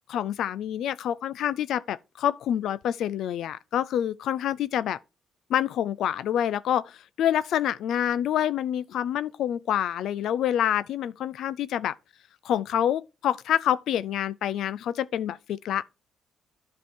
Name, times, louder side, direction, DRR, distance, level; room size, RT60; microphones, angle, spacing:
voice 1, 0.1-5.0 5.5-11.9 12.4-15.8, left 10 dB, 75° left, 0.3 m, -27 dB
10.0 x 3.6 x 4.4 m
cardioid pair, 90°, 0 cm